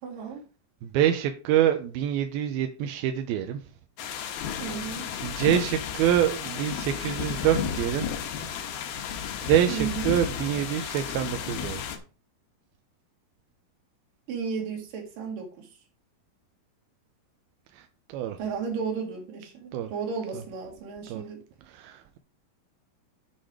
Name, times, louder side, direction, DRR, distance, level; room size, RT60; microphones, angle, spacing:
voice 1, 0.0-0.4 4.6-5.1 9.7-10.2 14.3-15.7 18.4-21.4, right 6 dB, 65° right, 3.7 m, -34 dB
voice 2, 0.8-3.6 5.2-8.1 9.4-11.8 18.1-18.4 19.7-19.9 21.1-21.2 21.7-22.2, right 11 dB, 85° right, 2.5 m, -26 dB
sound 1, 4.0-12.0, left 8 dB, 80° left, 3.0 m, -33 dB
7.7 x 6.4 x 4.9 m
omnidirectional pair, 4.5 m